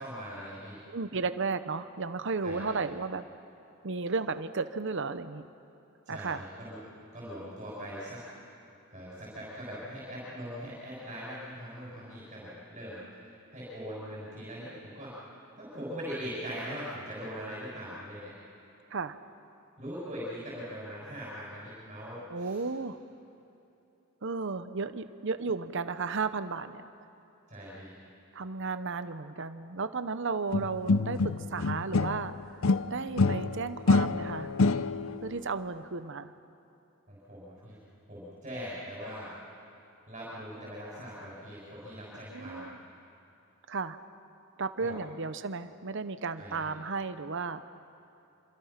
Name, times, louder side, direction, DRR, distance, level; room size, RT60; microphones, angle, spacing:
voice 1, 0.0-0.8 2.4-2.6 6.0-6.8 7.1-8.2 8.9-15.3 15.6-18.3 19.8-22.6 27.5-27.9 37.1-37.8 38.1-39.3 40.1-42.7 44.8-45.0 46.4-46.8, equal, 35° right, -7 dB, 6.8 m, -41 dB
voice 2, 0.9-3.3 3.8-5.4 6.1-6.5 18.9-19.2 22.3-23.0 24.2-26.8 28.3-34.5 35.2-36.3 42.3-42.8 43.7-44.0 44.6-47.6, right 4 dB, 60° right, 11 dB, 0.9 m, -34 dB
sound 1, 30.5-32.3 32.6-35.2, left 3 dB, 70° left, 0.6 m, -26 dB
27.0 x 26.5 x 5.9 m, 2.9 s
head